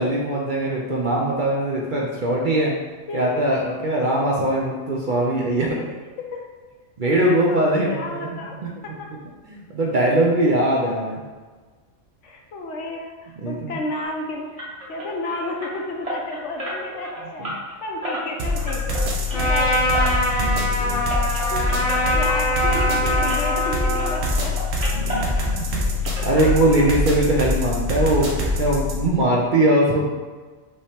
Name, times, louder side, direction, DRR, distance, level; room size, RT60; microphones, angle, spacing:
voice 1, 0.0-2.7 3.1-5.8 7.0-8.2 8.6-8.7 9.5-11.2 13.4-13.8 17.4-17.5 20.3-21.0 22.0-22.2 24.9-25.6 26.2-30.0, right 1 dB, 55° right, -3 dB, 0.6 m, -21 dB
voice 2, 7.0-8.6 8.8-9.1 12.2-17.5 17.8-20.0 21.5-24.6, left 2 dB, 70° left, 1 dB, 1.0 m, -32 dB
sound 1, 14.6-23.7 24.0-25.8 26.0-27.1 27.4-27.5 28.0-28.1 28.4-28.5, equal, 30° right, 1.2 m, -33 dB
sound 2, 18.4-29.1, left 3 dB, 80° right, 1.1 m, -24 dB
Trumpet, 19.3-24.3, equal, 90° left, 1.4 m, -23 dB
5.4 x 2.9 x 3.3 m, 1.4 s
omnidirectional pair, 1.3 m